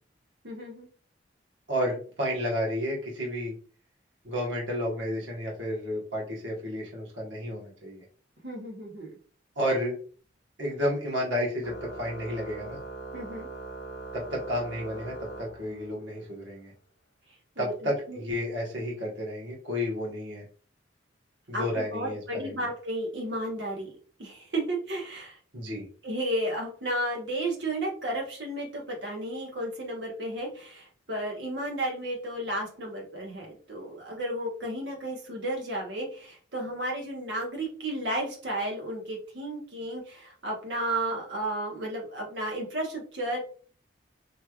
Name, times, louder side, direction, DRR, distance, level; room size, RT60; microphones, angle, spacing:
voice 1, 0.4-0.9 8.4-9.1 13.1-13.5 17.6-18.2 21.5-23.9 24.2-25.4 26.0-43.4, right 1 dB, 70° right, -1 dB, 1.2 m, -33 dB
voice 2, 1.7-3.5 4.2-8.0 9.5-9.9 10.6-12.8 14.1-16.7 17.6-20.4 21.5-22.6 25.5-25.8, equal, 85° right, -3 dB, 1.5 m, -31 dB
Organ, 11.6-16.1, right 3 dB, 65° left, 0.7 m, -41 dB
3.1 x 3.1 x 2.4 m, 0.41 s
head